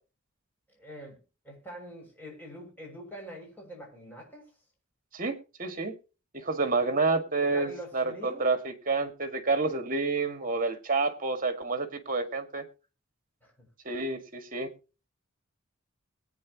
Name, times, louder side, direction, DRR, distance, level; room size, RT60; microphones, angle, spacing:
voice 1, 0.7-1.2 1.4-4.5 7.4-8.5 13.4-13.7, equal, 10° left, 6.7 m, -44 dB
voice 2, 5.1-5.9 6.3-12.6 13.9-14.7, right 3 dB, 45° right, 2.0 m, -29 dB
21.5 x 9.5 x 3.0 m
head